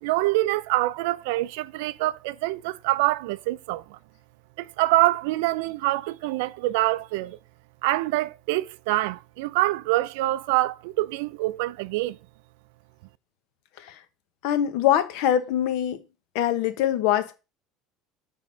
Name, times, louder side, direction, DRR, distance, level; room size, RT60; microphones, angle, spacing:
voice 1, 0.0-4.0 4.6-7.4 7.8-12.2, right 17 dB, 85° right, 0.4 m, -25 dB
voice 2, 14.4-16.0 16.3-17.3, left 11 dB, 60° left, 0.9 m, -23 dB
7.0 x 3.6 x 5.5 m
cardioid pair, 175°, 0 cm